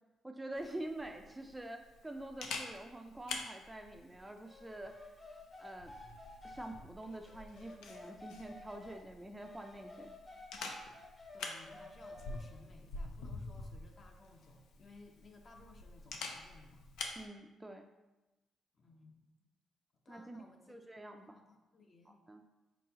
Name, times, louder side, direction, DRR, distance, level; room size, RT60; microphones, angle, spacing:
voice 1, 0.2-4.9 5.6-5.9 6.4-10.1 17.2-17.9 20.1-20.4 20.7-21.4 22.1-22.4, right 1 dB, 10° right, 5 dB, 0.3 m, -46 dB
Camera, 0.5-17.2, left 3 dB, 85° left, 0.5 m, -48 dB
sound 1, 4.4-9.0 9.4-12.6, left 2 dB, 25° left, 1.0 m, -52 dB
voice 2, 11.3-16.9 18.7-19.5 20.0-20.8 21.2-22.2, left 3 dB, 40° left, 3 dB, 0.7 m, -59 dB
4.5 x 4.0 x 2.8 m, 1.0 s
cardioid pair, 90°, 0 cm